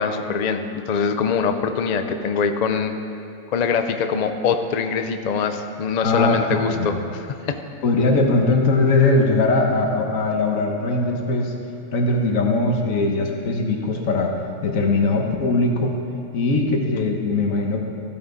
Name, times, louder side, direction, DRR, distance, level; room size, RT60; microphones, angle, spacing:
voice 1, 0.0-2.9 3.5-7.6, left 6 dB, 55° left, 7 dB, 0.4 m, -23 dB
voice 2, 6.0-6.9 7.8-11.5 11.9-14.3 14.6-15.9 16.3-17.8, left 2 dB, 75° left, 2 dB, 1.5 m, -20 dB
13.5 x 8.6 x 3.9 m, 2.7 s
omnidirectional pair, 1.4 m